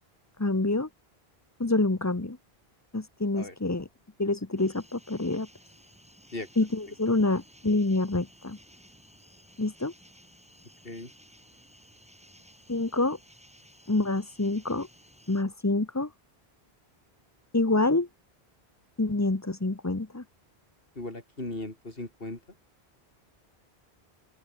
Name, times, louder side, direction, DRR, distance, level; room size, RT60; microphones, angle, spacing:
voice 1, 0.4-0.9 1.6-2.4 2.9-3.9 4.2-5.5 6.6-8.6 9.6-9.9 12.7-13.2 13.9-14.9 15.3-16.1 17.5-18.1 19.0-20.2, left 2 dB, 15° left, 1.0 m, -27 dB
sound 1, 4.6-15.4, equal, 5° right, 7.9 m, -56 dB
voice 2, 21.0-22.4, left 2 dB, 65° left, 4.5 m, -37 dB
open air
omnidirectional pair, 1.1 m